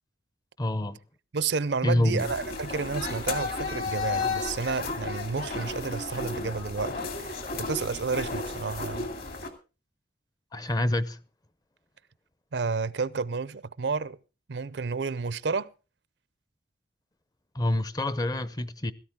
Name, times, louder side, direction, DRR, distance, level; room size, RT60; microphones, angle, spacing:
voice 1, 0.6-1.0 1.8-2.3 10.5-11.2 17.5-18.9, left 1 dB, 20° left, 0.6 m, -27 dB
voice 2, 1.3-9.1 12.5-14.2 14.5-15.7, right 4 dB, 75° right, 0.6 m, -31 dB
sound 1, 2.2-9.5, left 3 dB, 55° left, 2.5 m, -33 dB
16.0 x 13.5 x 3.6 m
head